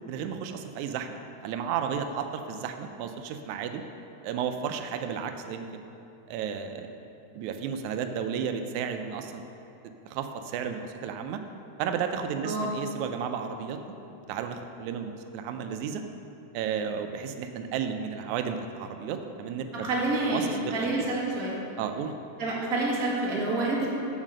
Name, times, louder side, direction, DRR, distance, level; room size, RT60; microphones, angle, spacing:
voice 1, 0.1-1.1 1.4-3.8 4.2-5.8 6.3-6.9 7.3-9.5 10.1-11.4 11.8-13.8 14.3-16.0 16.5-19.9 20.3-21.1 21.8-22.1, right 7 dB, 90° right, 7 dB, 2.0 m, -33 dB
voice 2, 19.7-21.6 22.4-23.9, right 2 dB, 35° right, -5 dB, 1.8 m, -28 dB
7.5 x 7.3 x 6.3 m, 2.8 s
omnidirectional pair, 3.3 m